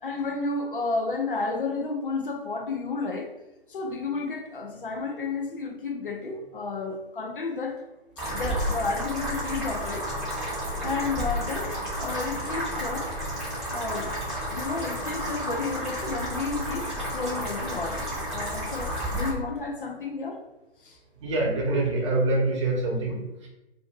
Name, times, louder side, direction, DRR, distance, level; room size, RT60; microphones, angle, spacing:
voice 1, 0.0-3.3 3.7-7.8 8.2-10.1 10.8-13.1 13.7-14.2 14.5-20.4 20.8-21.0, left 3 dB, 55° left, 3 dB, 0.6 m, -32 dB
sound 1, 8.2-19.3, equal, ahead, 0.9 m, -31 dB
voice 2, 21.2-23.5, right 2 dB, 30° right, -2 dB, 0.8 m, -25 dB
2.6 x 2.5 x 4.0 m, 0.95 s
figure-of-eight pair, 135°, 31 cm